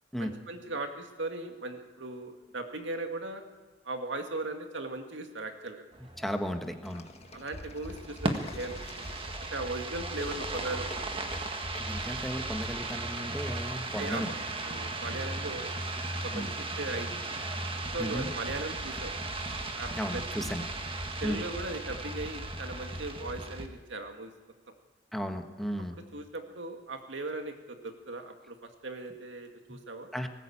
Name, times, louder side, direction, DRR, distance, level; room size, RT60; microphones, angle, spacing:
voice 1, 0.2-3.4 3.8-5.8 7.3-9.1 9.5-11.1 14.0-14.4 14.6-15.7 16.2-17.2 17.9-19.1 19.8-20.5 21.2-24.3 26.1-30.1, right 2 dB, 85° right, 5 dB, 2.1 m, -38 dB
sound 1, 5.9-23.7, right 2 dB, 30° right, 1.6 m, -36 dB
voice 2, 6.2-7.1 11.8-14.3 16.3-16.5 18.0-18.3 19.9-20.6 21.2-21.4 25.1-25.9 29.7-29.8 30.1-30.3, equal, ahead, 5 dB, 1.4 m, -34 dB
sound 2, 6.8-9.7 10.2-11.5 11.7-11.9, left 3 dB, 35° left, 1.6 m, -47 dB
19.5 x 19.0 x 8.7 m, 1.3 s
head